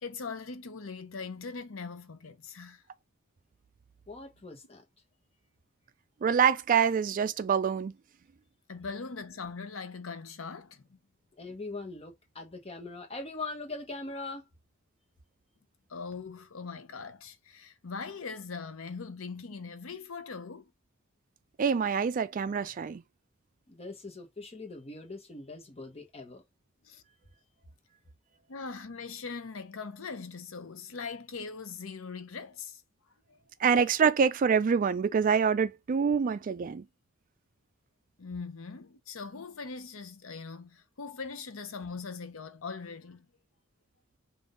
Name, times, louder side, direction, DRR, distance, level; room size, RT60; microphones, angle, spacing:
voice 1, 0.0-2.8 8.7-10.8 15.9-20.7 26.8-27.0 28.5-32.8 33.3-33.4 38.2-43.3, left 4 dB, 85° left, 0.8 m, -41 dB
voice 2, 4.1-4.8 11.4-14.5 23.7-26.4, left 3 dB, 30° left, 1.2 m, -41 dB
voice 3, 6.2-7.9 21.6-23.0 33.6-36.8, right 6 dB, 40° right, 0.3 m, -26 dB
3.7 x 2.6 x 3.7 m
head